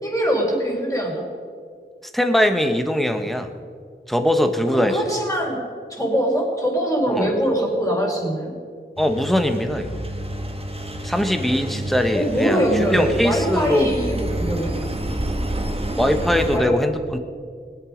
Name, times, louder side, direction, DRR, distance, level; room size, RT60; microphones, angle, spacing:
voice 1, 0.0-1.2 4.7-5.6 5.9-8.5 12.1-14.8 16.5-16.7, equal, 15° left, -2 dB, 4.4 m, -23 dB
voice 2, 2.1-3.5 4.1-5.0 7.1-7.3 9.0-10.0 11.0-13.9 16.0-17.2, left 1 dB, ahead, 7 dB, 1.3 m, -21 dB
Engine, 9.0-16.6, right 1 dB, 30° right, 1.5 m, -29 dB
21.0 x 8.3 x 5.2 m, 2.1 s
wide cardioid pair, 45°, 20 cm